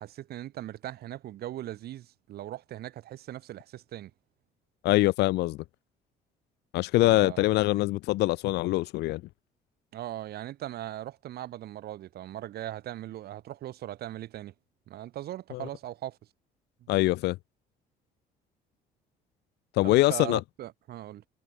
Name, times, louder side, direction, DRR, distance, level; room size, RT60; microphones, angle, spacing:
voice 1, 0.0-4.1 7.0-7.6 9.9-14.5 14.9-16.2 19.8-21.2, right 13 dB, 70° right, 6.6 m, -39 dB
voice 2, 4.8-5.6 6.7-9.2 15.5-15.7 16.9-17.4 19.7-20.4, left 19 dB, 80° left, 0.9 m, -24 dB
cardioid pair, 110°, 17 cm